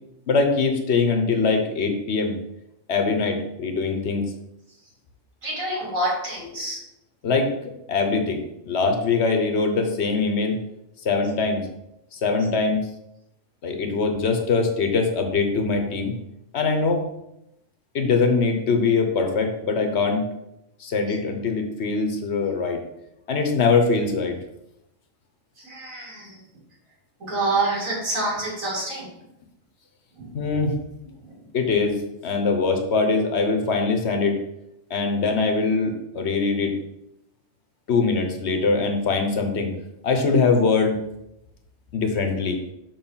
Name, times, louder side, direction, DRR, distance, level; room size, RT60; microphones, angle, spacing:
voice 1, 0.3-2.4 2.9-4.3 7.2-7.5 7.9-10.6 11.0-11.6 12.1-12.9 13.6-16.2 16.5-17.0 17.9-20.4 20.8-22.8 23.3-24.4 30.3-30.7 31.5-32.0 32.2-34.4 34.9-36.7 37.9-39.7 40.0-41.0 41.9-42.6, left 4 dB, 55° left, 5 dB, 1.2 m, -22 dB
voice 2, 5.4-6.8 25.6-26.4 27.2-29.1 30.2-30.3 31.2-31.5, right 2 dB, 85° right, -4 dB, 2.9 m, -27 dB
5.9 x 4.5 x 5.6 m, 0.84 s
omnidirectional pair, 1.4 m